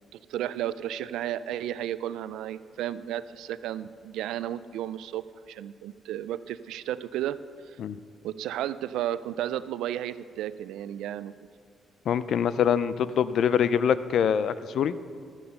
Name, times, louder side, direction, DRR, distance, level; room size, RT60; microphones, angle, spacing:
voice 1, 0.3-7.4 7.7-7.8 8.2-11.3, right 12 dB, 85° right, 15 dB, 0.3 m, -33 dB
voice 2, 12.1-15.0, left 8 dB, 65° left, 15 dB, 0.4 m, -24 dB
12.0 x 8.6 x 5.5 m, 2.3 s
cardioid pair, 90°, 0 cm